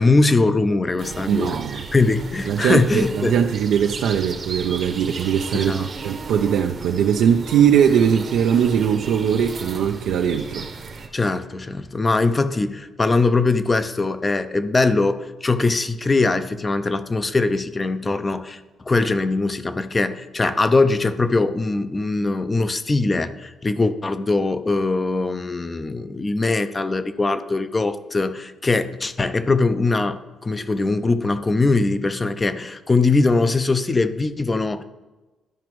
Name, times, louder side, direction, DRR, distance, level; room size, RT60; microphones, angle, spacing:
voice 1, 0.0-1.6 1.9-3.4 5.5-5.9 11.1-18.6 18.9-34.8, left 3 dB, 25° left, 11 dB, 0.4 m, -21 dB
sound 1, 1.0-11.1, right 4 dB, 45° right, 0.8 m, -35 dB
voice 2, 1.3-1.8 2.5-10.7, right 8 dB, 80° right, 3 dB, 0.4 m, -20 dB
12.0 x 5.0 x 3.0 m, 1.2 s
cardioid pair, 90°, 0 cm